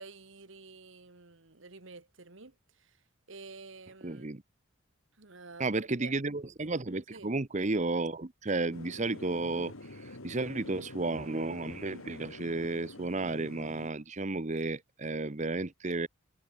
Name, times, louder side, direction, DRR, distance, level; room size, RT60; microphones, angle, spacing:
voice 1, 0.0-4.3 5.1-6.1 7.1-7.3, right 3 dB, 65° right, 1.7 m, -50 dB
voice 2, 4.0-4.4 5.6-16.1, right 2 dB, 35° right, 0.9 m, -33 dB
sound 1, 8.7-13.9, left 2 dB, 85° left, 4.0 m, -47 dB
head